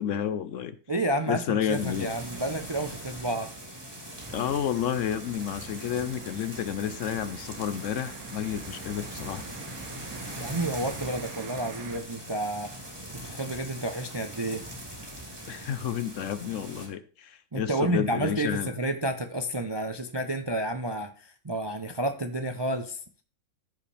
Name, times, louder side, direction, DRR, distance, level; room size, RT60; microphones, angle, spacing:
voice 1, 0.0-0.8 1.3-2.1 4.3-9.4 15.5-18.7, left 9 dB, 65° left, 13 dB, 0.9 m, -30 dB
voice 2, 0.9-3.5 10.4-12.7 13.1-14.6 17.5-23.0, right 1 dB, 30° right, 7 dB, 0.4 m, -30 dB
sound 1, 1.7-16.9, equal, 15° right, 2.8 m, -41 dB
sound 2, 4.2-12.0, right 8 dB, 75° right, 1.2 m, -46 dB
14.5 x 5.1 x 3.3 m, 0.40 s
omnidirectional pair, 1.6 m